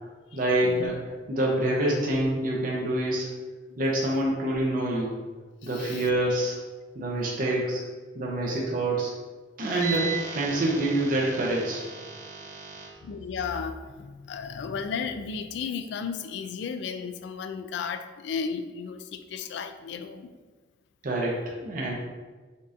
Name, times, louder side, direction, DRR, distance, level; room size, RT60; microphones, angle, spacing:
voice 1, 0.3-1.0 1.3-3.3 3.8-5.1 5.6-6.6 6.9-7.8 8.1-9.1 9.6-12.9 21.0-21.9, right 1 dB, 50° right, -3 dB, 0.6 m, -26 dB
voice 2, 13.0-20.3, left 6 dB, 65° left, 9 dB, 0.3 m, -34 dB
5.2 x 2.6 x 2.5 m, 1.4 s
head